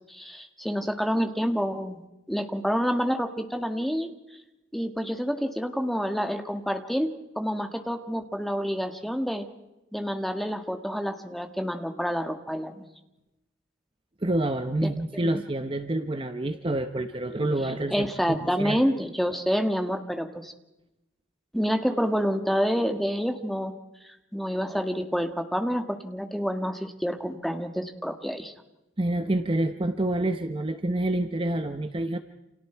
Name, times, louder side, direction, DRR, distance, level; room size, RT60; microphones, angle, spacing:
voice 1, 0.1-2.0 2.3-4.1 4.7-7.1 7.4-9.5 9.9-12.8 14.8-14.9 15.2-15.4 17.6-20.5 21.5-23.7 24.3-28.5, equal, ahead, 5 dB, 1.8 m, -28 dB
voice 2, 14.2-18.8 29.0-32.2, right 1 dB, 25° right, 8 dB, 0.9 m, -28 dB
29.5 x 28.0 x 4.6 m, 0.97 s
head